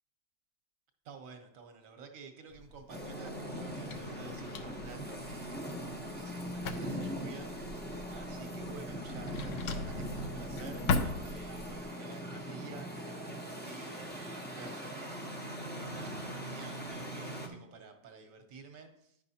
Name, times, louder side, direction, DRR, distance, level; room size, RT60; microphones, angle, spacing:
voice 1, 1.0-5.9 6.2-7.5 7.8-19.2, right 4 dB, 60° right, 6 dB, 1.2 m, -51 dB
Drawer open or close, 2.5-11.8, left 4 dB, 70° left, 0.7 m, -40 dB
sound 1, 2.9-17.5, equal, 15° left, 0.4 m, -41 dB
9.7 x 5.6 x 2.8 m, 0.76 s
omnidirectional pair, 1.7 m